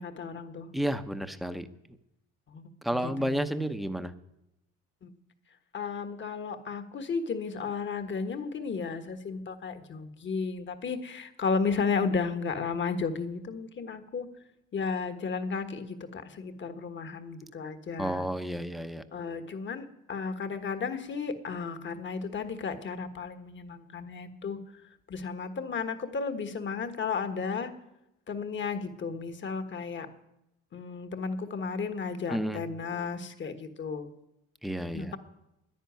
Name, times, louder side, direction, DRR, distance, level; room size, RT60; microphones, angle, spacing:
voice 1, 0.0-0.7 2.5-2.7 3.0-3.4 5.0-5.1 5.7-14.3 14.7-18.2 19.1-24.6 25.1-27.7 28.3-30.1 30.7-34.1 34.9-35.2, left 5 dB, 35° left, 10 dB, 1.4 m, -33 dB
voice 2, 0.7-1.7 2.8-4.1 18.0-19.0 32.3-32.6 34.6-35.1, equal, ahead, 10 dB, 0.8 m, -31 dB
10.5 x 10.0 x 9.4 m, 0.88 s
supercardioid pair, 95°, 31 cm